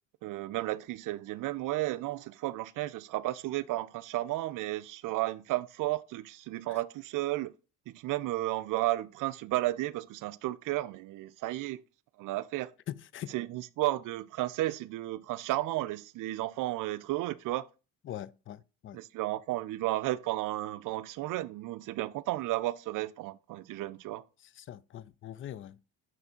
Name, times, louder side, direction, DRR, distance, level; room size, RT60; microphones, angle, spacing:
voice 1, 0.2-7.5 7.9-11.8 12.2-12.7 13.3-17.7 18.9-24.2, right 16 dB, 55° right, 0.5 m, -33 dB
voice 2, 12.9-13.3 18.1-19.0 24.6-25.8, left 11 dB, 35° left, 0.4 m, -42 dB
5.8 x 3.3 x 5.1 m
supercardioid pair, 70°, 38 cm